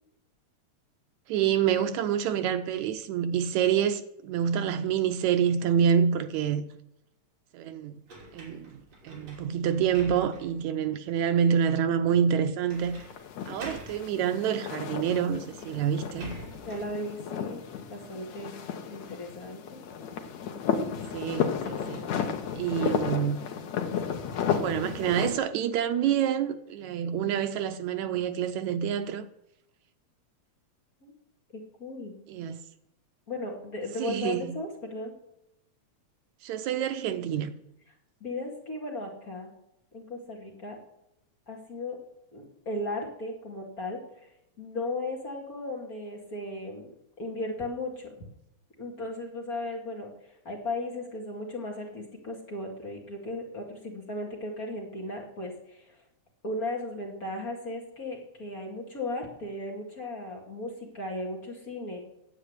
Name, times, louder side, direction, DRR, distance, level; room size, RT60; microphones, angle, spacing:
voice 1, 1.3-6.6 7.5-8.0 8.3-8.8 9.0-13.0 13.5-16.3 21.1-22.0 22.5-23.4 24.6-29.3 32.3-32.6 34.0-34.5 36.4-37.5, right 8 dB, 80° right, 2.0 m, -27 dB
sound 1, 8.1-10.6 11.2-11.3 12.7-13.1 13.4-14.0 15.1-15.2 15.5-17.0, right 3 dB, 55° right, 4.1 m, -46 dB
sound 2, 12.8-25.4, left 7 dB, 70° left, 2.5 m, -33 dB
voice 2, 16.7-17.6 17.9-18.6 18.9-19.8 31.0-31.1 31.5-32.1 33.3-35.1 38.2-39.5 39.9-40.8 41.5-42.0 42.3-44.0 44.6-46.9 47.2-48.1 48.8-50.1 50.4-56.0 56.4-62.0, left 2 dB, 30° left, 2.4 m, -36 dB
10.0 x 8.2 x 8.1 m
omnidirectional pair, 3.4 m